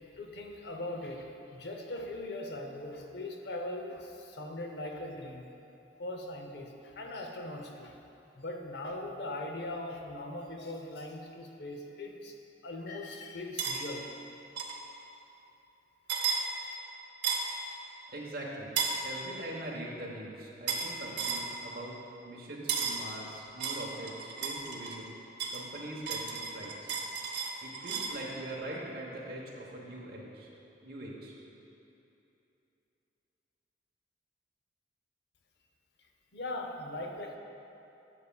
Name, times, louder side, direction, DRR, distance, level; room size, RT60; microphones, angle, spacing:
voice 1, 0.2-5.5 6.0-8.0 8.4-12.4 12.6-14.1 36.3-37.4, left 1 dB, 65° left, 3 dB, 0.7 m, -40 dB
sound 1, 13.6-13.8 14.6-14.8 16.1-16.4 17.2-17.6 18.8-19.0 20.7-20.9 21.2-21.5 22.7-23.0 23.6-25.0 25.4-28.2, right 6 dB, 75° right, 0.8 m, -33 dB
voice 2, 18.1-18.7 19.0-22.0 22.2-25.2 25.5-26.9 27.6-30.5 30.8-31.3, right 1 dB, 55° right, -3 dB, 1.1 m, -42 dB
11.0 x 7.0 x 2.3 m, 2.9 s
head